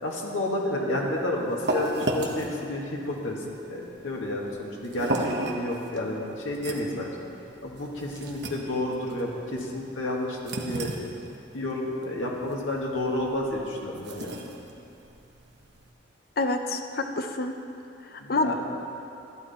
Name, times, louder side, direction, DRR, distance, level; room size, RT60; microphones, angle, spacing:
voice 1, 0.0-3.4 3.7-7.1 7.6-10.9 11.5-14.4 18.2-18.5, left 1 dB, 75° left, -2 dB, 1.9 m, -30 dB
sound 1, 0.9-15.9, right 1 dB, 55° right, 1.1 m, -35 dB
voice 2, 16.4-17.5 18.0-18.5, left 2 dB, 45° left, 5 dB, 0.6 m, -27 dB
14.5 x 9.8 x 4.3 m, 2.7 s
head